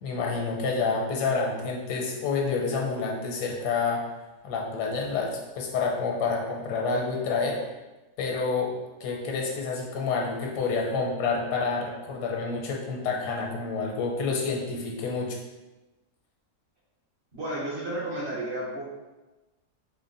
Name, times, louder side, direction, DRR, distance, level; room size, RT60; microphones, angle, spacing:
voice 1, 0.0-4.0 4.4-7.6 8.2-8.7 9.0-15.4, left 4 dB, 85° left, 0 dB, 1.3 m, -28 dB
voice 2, 17.3-18.8, right 1 dB, 50° right, -6 dB, 1.0 m, -32 dB
4.0 x 2.1 x 3.8 m, 1.1 s
omnidirectional pair, 1.7 m